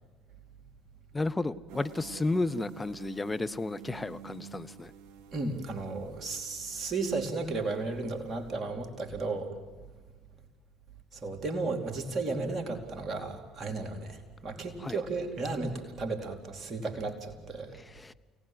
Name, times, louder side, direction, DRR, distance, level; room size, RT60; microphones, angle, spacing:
voice 1, 1.1-4.9 14.8-15.0 17.7-18.1, left 2 dB, 15° left, 12 dB, 0.8 m, -32 dB
sound 1, 1.7-8.5, right 8 dB, 55° right, 3.8 m, -50 dB
voice 2, 5.3-9.5 11.2-17.7, right 3 dB, 40° right, 2 dB, 4.3 m, -34 dB
29.0 x 19.0 x 7.8 m, 1.4 s
figure-of-eight pair, 55°, 0 cm